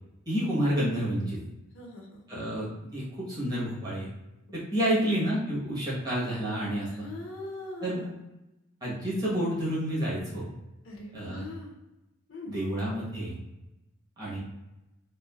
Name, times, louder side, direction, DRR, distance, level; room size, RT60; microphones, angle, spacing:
voice 1, 0.3-1.4 2.3-4.1 4.5-7.1 7.8-8.0 8.8-10.5 11.1-11.4 12.5-13.4 14.2-14.4, equal, 20° right, -8 dB, 1.0 m, -29 dB
voice 2, 1.7-2.2 4.8-5.1 6.9-8.1 10.8-11.7 12.3-12.5, left 2 dB, 65° left, -1 dB, 0.6 m, -42 dB
3.1 x 2.4 x 2.3 m, 0.97 s
head